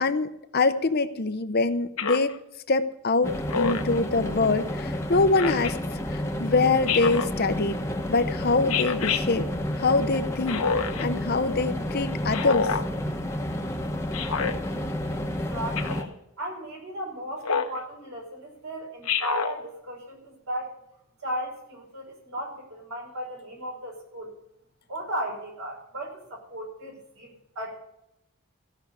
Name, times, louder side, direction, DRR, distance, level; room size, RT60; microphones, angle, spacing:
voice 1, 0.0-2.4 2.7-5.8 6.1-7.8 8.1-9.5 9.8-10.6 11.0-12.7, left 3 dB, 45° left, 10 dB, 0.7 m, -24 dB
Speech synthesizer, 2.0-2.3 3.5-4.0 5.4-5.7 6.9-7.3 8.7-9.2 10.5-11.0 12.3-12.9 14.1-14.5 15.8-16.1 17.4-17.8 19.1-19.5, left 6 dB, 75° left, 1.1 m, -27 dB
sound 1, 3.2-16.0, left 1 dB, 10° left, 1.0 m, -31 dB
voice 2, 15.5-20.7 21.2-24.3 24.9-27.8, right 1 dB, 75° right, 0 dB, 5.1 m, -36 dB
15.5 x 6.3 x 9.6 m, 0.83 s
head